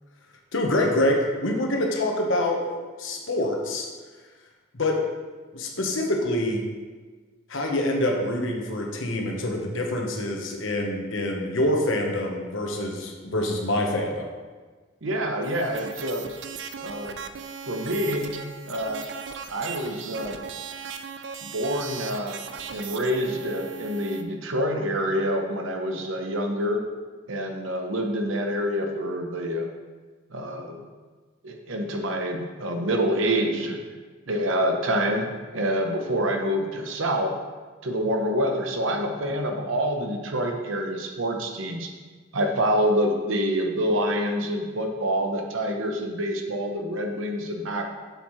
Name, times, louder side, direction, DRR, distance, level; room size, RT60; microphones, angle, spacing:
voice 1, 0.5-2.6 3.0-3.9 4.7-5.0 5.5-6.6 7.5-14.3, left 1 dB, 75° left, 1 dB, 1.1 m, -26 dB
voice 2, 15.0-16.3 16.8-17.2 17.7-18.3 18.7-19.0 19.5-20.4 21.4-22.4 22.7-26.8 27.3-29.7 30.3-30.8 31.4-33.8 34.3-37.3 37.8-41.9 42.3-47.8, equal, 75° right, 3 dB, 0.9 m, -27 dB
sound 1, 15.4-24.2, right 6 dB, 60° right, 0.4 m, -38 dB
7.1 x 7.0 x 3.2 m, 1.4 s
head